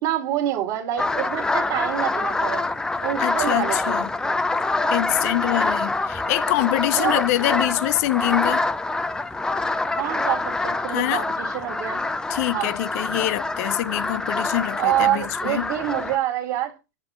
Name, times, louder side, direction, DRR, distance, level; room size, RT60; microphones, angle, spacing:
voice 1, 0.0-2.6 3.0-4.0 6.9-7.2 9.9-12.0 12.5-12.7 14.8-16.8, right 12 dB, 50° right, 1.9 m, -26 dB
sound 1, 1.0-16.2, left 2 dB, 5° left, 0.6 m, -26 dB
voice 2, 3.2-4.1 4.9-8.7 10.9-11.2 12.3-15.7, left 16 dB, 55° left, 0.4 m, -25 dB
8.1 x 3.5 x 5.5 m
hypercardioid pair, 125°, 10 cm